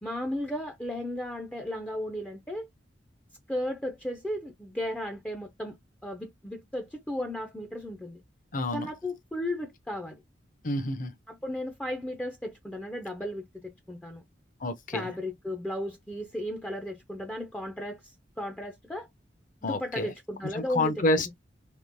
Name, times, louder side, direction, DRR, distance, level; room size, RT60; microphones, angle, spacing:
voice 1, 0.0-2.7 3.5-5.8 6.0-8.2 8.7-10.2 11.3-14.2 14.9-19.1 19.6-21.0, left 1 dB, 5° left, 0.4 m, -35 dB
voice 2, 8.5-8.9 10.6-11.1 14.6-15.1 19.6-20.1 20.5-21.3, left 2 dB, 50° left, 0.7 m, -28 dB
3.6 x 2.7 x 2.6 m
head